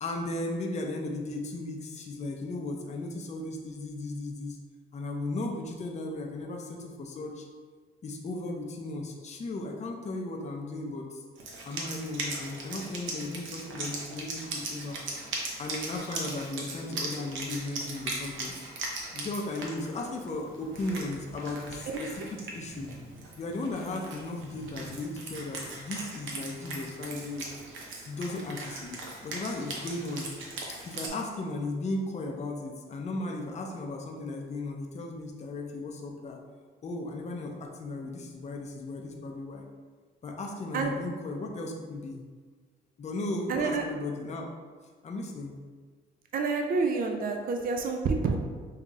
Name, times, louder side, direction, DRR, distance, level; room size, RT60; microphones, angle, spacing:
voice 1, 0.0-4.6 4.9-7.5 8.0-11.2 11.6-15.0 15.6-18.6 19.1-22.9 23.4-27.5 28.0-30.3 30.7-36.4 36.8-39.6 40.2-42.2 43.0-44.5 45.0-45.5, left 2 dB, 35° left, 1 dB, 0.6 m, -36 dB
Wind instrument woodwind instrument, 11.4-31.1, right 2 dB, 80° right, 0.8 m, -39 dB
voice 2, 43.5-43.8 46.3-48.4, right 4 dB, 45° right, 4 dB, 0.4 m, -28 dB
5.4 x 2.8 x 2.4 m, 1.5 s
cardioid pair, 90°, 20 cm